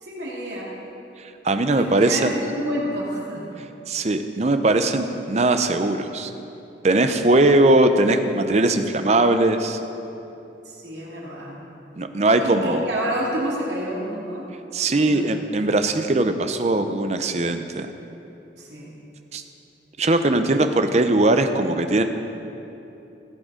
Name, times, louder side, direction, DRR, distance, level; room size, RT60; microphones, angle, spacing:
voice 1, 0.0-0.7 1.6-3.4 10.6-11.6 12.4-14.5 14.9-15.4 18.6-18.9 20.2-20.4, equal, 75° right, -5 dB, 2.8 m, -29 dB
voice 2, 1.4-2.3 3.9-6.3 6.8-9.8 12.0-12.8 14.7-17.9 19.3-19.4 20.0-22.0, right 2 dB, 40° right, 8 dB, 0.6 m, -20 dB
16.5 x 7.7 x 5.0 m, 2.9 s
head